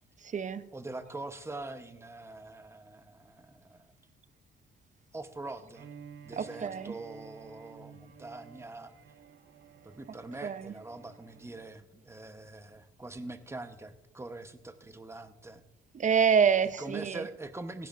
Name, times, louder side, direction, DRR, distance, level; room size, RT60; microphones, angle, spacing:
voice 1, 0.2-0.7 6.3-6.9 10.4-10.7 15.9-17.3, right 7 dB, 40° right, 14 dB, 0.8 m, -27 dB
voice 2, 0.7-3.9 5.1-5.9 6.2-8.9 9.8-15.6 16.8-17.9, right 2 dB, 15° right, 9 dB, 1.0 m, -43 dB
Bowed string instrument, 5.7-11.8, right 7 dB, 70° right, 1.2 m, -53 dB
18.0 x 16.5 x 2.6 m, 1.0 s
cardioid pair, 90°, 20 cm